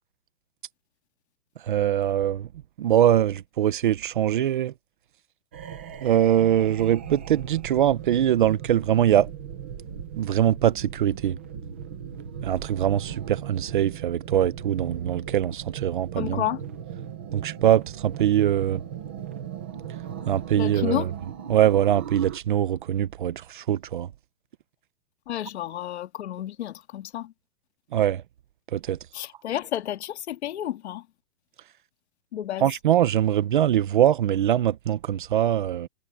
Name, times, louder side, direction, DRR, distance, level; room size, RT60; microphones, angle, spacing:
voice 1, 1.6-2.5 2.8-4.7 6.0-9.3 10.2-11.4 12.4-16.4 17.3-18.8 20.3-21.0 21.5-24.1 27.9-28.2 28.7-29.0 32.6-35.9, right 11 dB, 35° right, 0.9 m, -22 dB
sound 1, 5.5-22.4, right 8 dB, 10° right, 0.5 m, -38 dB
voice 2, 16.2-16.6 20.5-21.1 25.3-27.3 29.1-31.1 32.3-32.7, left 12 dB, 45° left, 2.2 m, -31 dB
hypercardioid pair, 175°, 44 cm